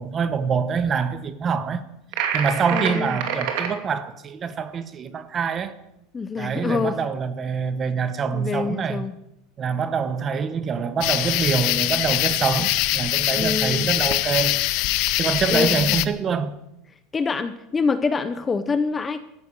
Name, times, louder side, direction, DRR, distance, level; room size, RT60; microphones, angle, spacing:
voice 1, 0.0-1.8 2.3-5.8 6.4-9.1 9.6-14.6 15.2-16.5, right 6 dB, 20° right, 0.9 m, -25 dB
sound 1, 2.1-3.7, right 7 dB, 60° right, 2.5 m, -26 dB
voice 2, 2.7-3.2 6.1-7.0 8.3-9.1 12.6-12.7 13.4-13.9 15.5-16.0 17.1-19.2, left 4 dB, 15° left, 0.6 m, -25 dB
sound 2, 11.0-16.0, left 17 dB, 50° left, 0.7 m, -23 dB
14.0 x 10.0 x 8.3 m
supercardioid pair, 170°, 0 cm